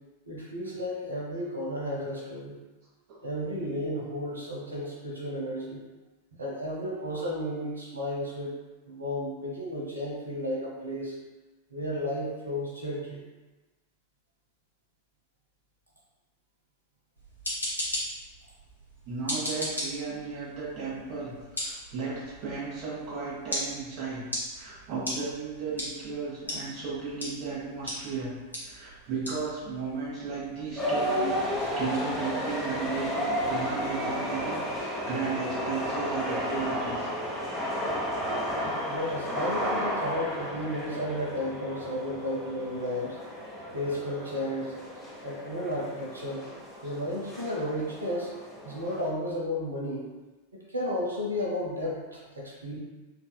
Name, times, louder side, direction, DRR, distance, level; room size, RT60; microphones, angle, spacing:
voice 1, 0.3-2.6 3.2-5.8 6.4-8.5 8.9-11.1 11.7-13.2 31.6-31.7 38.9-43.2 43.7-44.7 45.2-46.4 46.8-48.3 48.6-50.1 50.7-52.8, left 1 dB, 75° right, -4 dB, 0.7 m, -33 dB
sound 1, 17.2-34.0, equal, 85° left, 1.1 m, -39 dB
voice 2, 19.0-21.3 21.6-24.2 24.5-28.3 28.6-31.4 31.7-37.1, right 4 dB, 40° right, -8 dB, 1.3 m, -35 dB
sound 2, 30.8-49.1, equal, 15° left, 0.8 m, -33 dB
4.0 x 2.5 x 2.2 m, 1.2 s
figure-of-eight pair, 90°, 0 cm